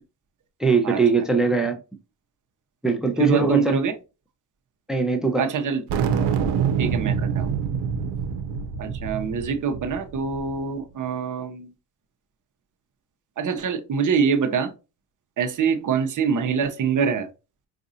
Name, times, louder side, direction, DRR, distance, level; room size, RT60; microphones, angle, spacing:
voice 1, 0.6-1.8 2.8-3.8 4.9-5.4, right 4 dB, ahead, 0.9 m, -21 dB
voice 2, 3.2-3.9 5.4-5.8 6.8-7.5 8.8-11.7 13.4-14.7 15.4-17.3, right 6 dB, 50° right, 0.9 m, -24 dB
sound 1, 5.9-10.6, right 7 dB, 90° right, 0.8 m, -26 dB
4.9 x 2.6 x 2.7 m
cardioid pair, 80°, 41 cm